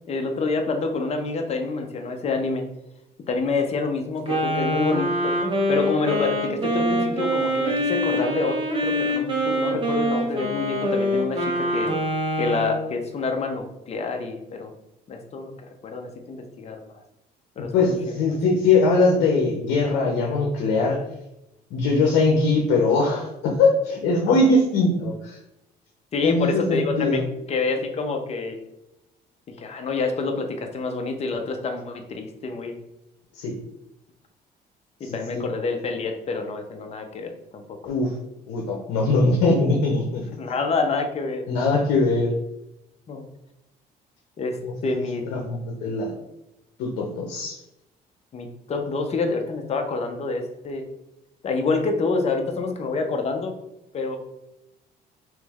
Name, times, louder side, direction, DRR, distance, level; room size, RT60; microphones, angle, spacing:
voice 1, 0.1-2.6 3.3-11.9 12.4-14.7 15.1-16.8 17.6-18.0 26.1-27.2 27.5-28.6 29.6-32.8 35.0-37.9 40.4-41.4 43.1-43.3 44.4-45.3 48.3-50.8 51.4-53.5 53.9-54.2, left 3 dB, 40° left, 4 dB, 0.7 m, -27 dB
Wind instrument woodwind instrument, 4.3-12.9, equal, 30° right, 1.0 m, -24 dB
voice 2, 17.7-21.0 21.7-25.4 26.2-27.2 33.3-33.5 35.0-35.4 37.8-38.1 38.5-40.3 41.5-42.3 45.3-46.2 46.8-47.6, left 3 dB, 85° left, -1 dB, 0.8 m, -21 dB
3.2 x 3.1 x 3.5 m, 0.87 s
cardioid pair, 110°, 17 cm